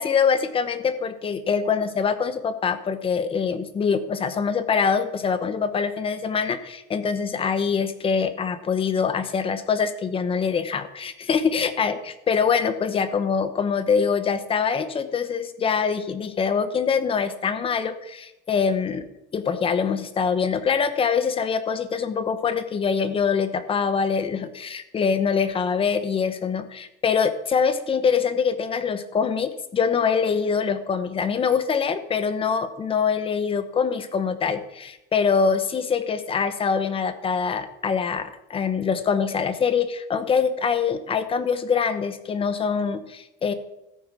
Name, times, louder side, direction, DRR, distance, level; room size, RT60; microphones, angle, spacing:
voice 1, 0.0-19.1 19.3-43.5, left 6 dB, 25° left, 11 dB, 1.1 m, -24 dB
14.0 x 9.1 x 6.2 m, 0.90 s
cardioid pair, 160°, 21 cm